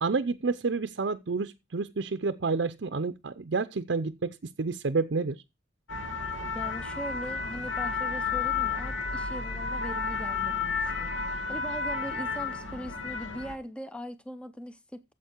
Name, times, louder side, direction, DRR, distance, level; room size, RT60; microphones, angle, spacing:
voice 1, 0.0-5.4, right 4 dB, 60° right, 0.6 m, -29 dB
sound 1, 5.9-13.5, left 5 dB, 80° left, 1.4 m, -32 dB
voice 2, 6.5-15.1, equal, 5° left, 0.6 m, -40 dB
14.0 x 7.4 x 4.4 m
head